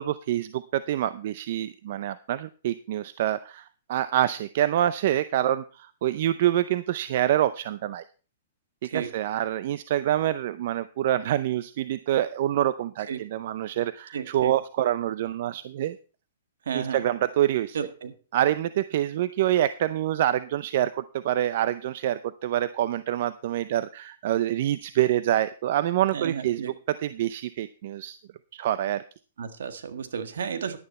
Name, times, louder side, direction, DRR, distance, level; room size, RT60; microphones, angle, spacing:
voice 1, 0.0-8.0 8.9-16.0 16.7-17.8 18.3-28.2 28.5-29.0, right 12 dB, 55° right, 14 dB, 0.6 m, -26 dB
voice 2, 14.1-14.5 16.6-17.0 17.7-18.1 26.1-26.7 29.4-30.8, right 7 dB, 75° right, 9 dB, 1.7 m, -32 dB
11.5 x 10.5 x 4.3 m, 0.37 s
hypercardioid pair, 140°, 0 cm